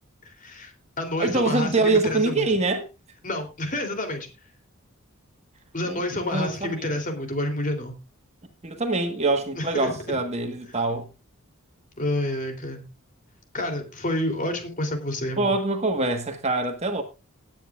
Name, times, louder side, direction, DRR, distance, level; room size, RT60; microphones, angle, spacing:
voice 1, 0.2-2.5 3.2-4.3 5.7-7.9 9.6-10.2 12.0-12.8 13.5-15.5, left 1 dB, 35° left, 3.2 m, -29 dB
voice 2, 1.2-2.9 5.9-6.0 6.3-6.9 8.6-11.1 15.4-17.0, right 2 dB, 30° right, 1.5 m, -24 dB
19.0 x 9.2 x 2.4 m
head